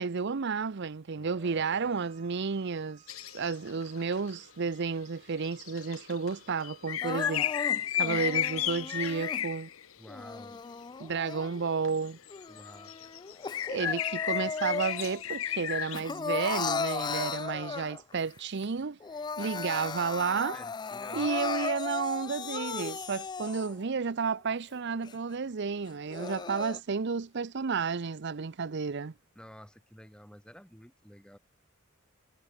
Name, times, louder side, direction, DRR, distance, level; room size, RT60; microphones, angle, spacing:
voice 1, 0.0-3.0 3.3-7.5 7.9-9.7 11.0-12.2 13.7-19.0 19.4-20.6 21.1-29.1, right 5 dB, 55° right, 0.6 m, -32 dB
voice 2, 1.2-2.0 10.0-10.6 12.5-13.1 20.3-21.3 29.3-31.4, equal, 5° left, 2.8 m, -51 dB
Bowed string instrument, 1.4-7.0, right 5 dB, 30° right, 4.2 m, -63 dB
sound 1, 3.1-4.3 4.9-5.0 5.4-9.8 11.8-16.0, left 11 dB, 75° left, 0.9 m, -33 dB
Crying sobbing, 7.0-9.4 10.1-11.8 12.3-15.2 15.5-18.2 18.6-18.7 19.0-23.8 24.4-24.5 25.0-25.1 25.9-26.8, left 5 dB, 20° left, 0.3 m, -36 dB
head